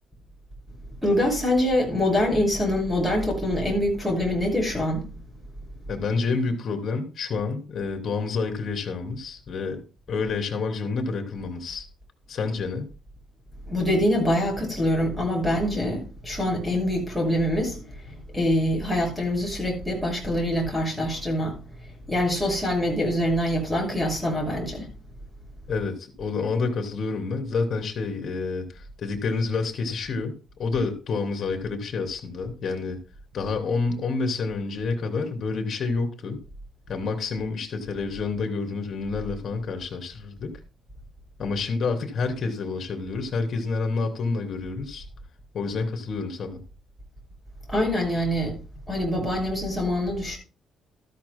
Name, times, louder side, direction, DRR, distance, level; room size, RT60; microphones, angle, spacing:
voice 1, 1.0-5.1 13.7-21.6 22.1-24.9 47.7-48.6 48.9-50.4, left 1 dB, 5° right, 6.6 m, -25 dB
voice 2, 5.9-11.9 12.3-12.9 25.7-33.0 33.3-36.4 36.9-40.5 41.4-45.0 45.5-46.6, left 4 dB, 50° left, 3.1 m, -28 dB
13.5 x 13.5 x 2.2 m
cardioid pair, 130°, 0 cm